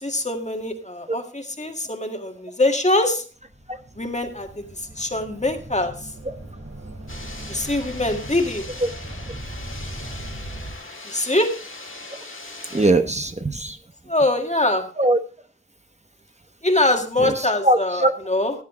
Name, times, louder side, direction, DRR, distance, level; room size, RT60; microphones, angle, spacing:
voice 1, 0.0-3.2 4.0-4.5 5.0-5.9 7.5-8.7 11.1-11.5 14.1-14.8 16.6-18.5, left 2 dB, 35° left, 4 dB, 1.8 m, -23 dB
sound 1, 3.4-10.7, right 1 dB, 85° right, 3.9 m, -38 dB
sound 2, 7.1-12.9, left 2 dB, 85° left, 1.9 m, -39 dB
voice 2, 12.7-13.8 15.0-15.2 17.2-18.1, right 1 dB, 35° right, 7 dB, 0.9 m, -20 dB
16.5 x 8.3 x 3.7 m, 0.38 s
wide cardioid pair, 50°, 20 cm